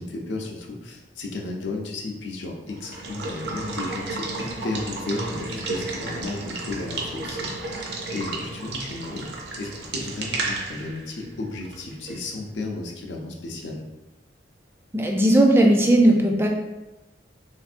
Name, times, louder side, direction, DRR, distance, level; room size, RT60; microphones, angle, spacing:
voice 1, 0.0-7.5 8.1-9.3 9.6-13.8, left 2 dB, 75° left, 0 dB, 0.5 m, -33 dB
Water / Water tap faucet / Liquid, 2.7-12.3, right 2 dB, 65° right, 0.6 m, -33 dB
voice 2, 14.9-16.5, right 1 dB, 15° right, 1 dB, 0.3 m, -17 dB
3.3 x 2.6 x 2.5 m, 1.0 s
head